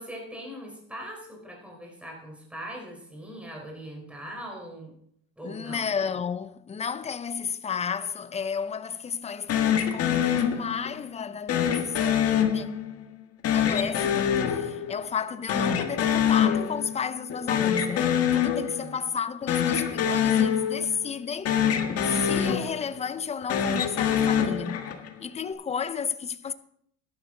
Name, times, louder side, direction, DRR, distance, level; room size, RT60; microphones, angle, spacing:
voice 1, 0.0-4.9 5.4-5.9 18.5-19.0, equal, 5° right, 4.0 m, -41 dB
voice 2, 5.4-12.7 13.5-21.6 22.0-24.9 25.2-26.5, left 6 dB, 20° left, 0.6 m, -32 dB
sound 1, 9.5-11.0 11.5-13.0 13.4-15.2 15.5-17.0 17.3-19.0 19.4-21.2 21.5-23.0 23.4-25.2, left 8 dB, 50° left, 1.6 m, -25 dB
12.5 x 11.0 x 3.8 m
cardioid pair, 120°, 32 cm